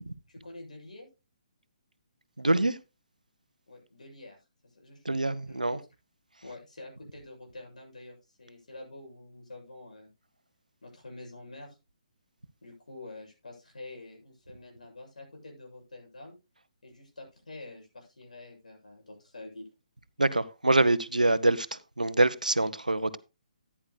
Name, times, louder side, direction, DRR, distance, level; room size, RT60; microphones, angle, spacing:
voice 1, 0.3-1.1 3.7-4.4 4.6-5.1 5.5-5.8 6.4-10.1 10.8-11.8 12.6-16.4 16.8-19.7, left 2 dB, 70° left, 7.5 m, -47 dB
voice 2, 2.4-2.8 5.1-5.8 20.2-23.2, right 2 dB, 85° right, 0.8 m, -25 dB
15.0 x 10.0 x 2.2 m
figure-of-eight pair, 135°, 4 cm